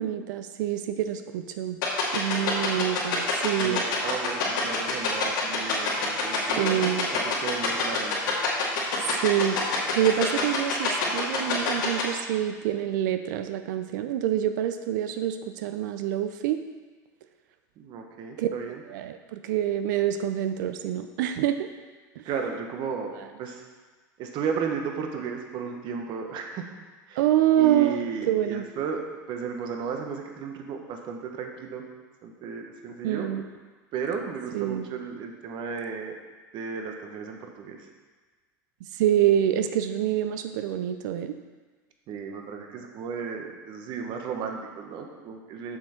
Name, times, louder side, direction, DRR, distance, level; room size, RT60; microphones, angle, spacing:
voice 1, 0.0-1.8 2.1-3.8 6.6-7.1 9.2-16.6 18.4-18.5 18.9-21.7 22.2-22.3 23.2-23.3 27.2-28.7 33.0-33.4 34.5-34.9 39.0-41.4, right 11 dB, 70° right, 8 dB, 0.5 m, -26 dB
sound 1, 1.8-12.0, left 7 dB, 75° left, 2.2 m, -25 dB
voice 2, 3.6-8.3 17.8-18.8 22.3-23.1 23.4-23.6 24.2-26.6 27.1-27.2 27.6-29.0 29.3-31.8 32.2-33.3 33.9-36.1 36.5-37.8 42.1-45.8, right 6 dB, 50° right, 3 dB, 1.3 m, -34 dB
7.3 x 6.5 x 4.4 m, 1.4 s
hypercardioid pair, 95°, 10 cm